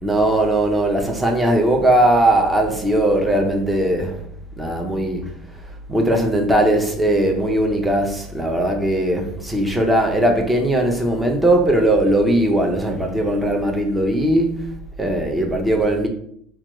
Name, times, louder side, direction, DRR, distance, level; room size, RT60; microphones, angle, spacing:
voice 1, 0.0-4.2 4.6-5.3 5.9-14.7 15.0-16.1, right 1 dB, 5° right, 0.5 m, -19 dB
4.6 x 2.2 x 3.0 m
cardioid pair, 160°, 0 cm